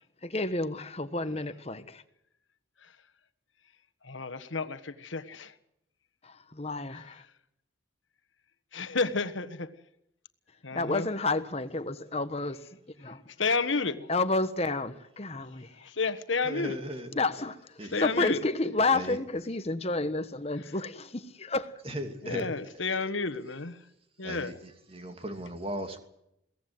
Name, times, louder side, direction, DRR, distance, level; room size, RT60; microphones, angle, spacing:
voice 1, 0.2-2.0 6.2-7.2 10.7-12.6 13.0-13.2 14.1-15.7 17.1-17.6 18.0-21.7, left 2 dB, 35° left, 1.3 m, -30 dB
voice 2, 4.0-5.5 8.7-9.7 10.6-11.1 13.4-14.1 15.8-16.7 17.9-18.4 22.2-23.8 24.2-24.5, left 4 dB, 85° left, 1.4 m, -31 dB
voice 3, 16.4-17.2 17.8-18.3 18.9-19.2 21.8-23.0 24.2-26.0, equal, 30° right, 2.7 m, -38 dB
22.5 x 17.5 x 7.9 m
head